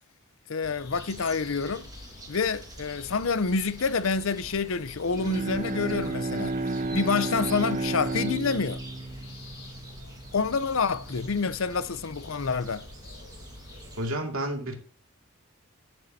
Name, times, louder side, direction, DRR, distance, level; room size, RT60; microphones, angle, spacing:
voice 1, 0.5-1.9 2.3-6.5 6.9-8.8 10.3-12.8, left 5 dB, 75° left, 0.6 m, -27 dB
sound 1, 0.6-14.0, left 2 dB, 50° left, 4.5 m, -48 dB
sound 2, 0.9-14.1, right 2 dB, 20° right, 1.7 m, -48 dB
Bowed string instrument, 5.1-10.4, right 2 dB, 35° right, 0.4 m, -32 dB
voice 2, 14.0-14.7, right 1 dB, 80° right, 2.3 m, -30 dB
10.5 x 9.6 x 2.8 m
head